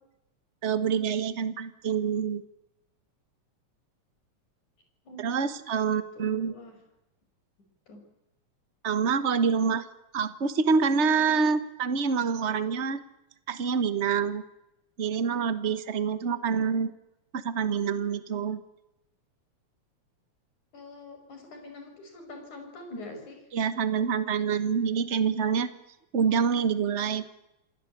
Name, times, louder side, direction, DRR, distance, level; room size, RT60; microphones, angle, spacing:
voice 1, 0.6-2.4 5.2-6.5 8.8-9.8 10.1-13.0 13.5-14.4 15.0-16.9 17.3-18.6 23.5-25.7 26.1-27.2, right 6 dB, 55° right, 12 dB, 0.7 m, -26 dB
voice 2, 6.2-6.8 7.9-8.0 20.7-23.4, left 2 dB, 85° left, 5 dB, 7.3 m, -44 dB
27.5 x 18.0 x 8.6 m, 0.91 s
omnidirectional pair, 3.3 m